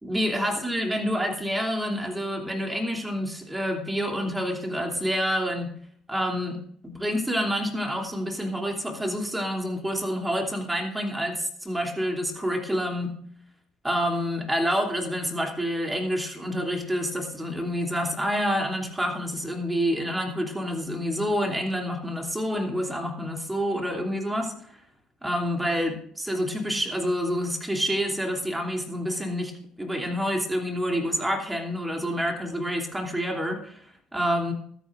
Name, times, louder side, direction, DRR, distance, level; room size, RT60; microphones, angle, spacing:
voice 1, 0.0-5.7 6.1-13.2 13.8-24.8 25.2-34.5, equal, 10° right, 3 dB, 2.9 m, -28 dB
20.5 x 9.9 x 2.5 m, 0.65 s
figure-of-eight pair, 55°, 0 cm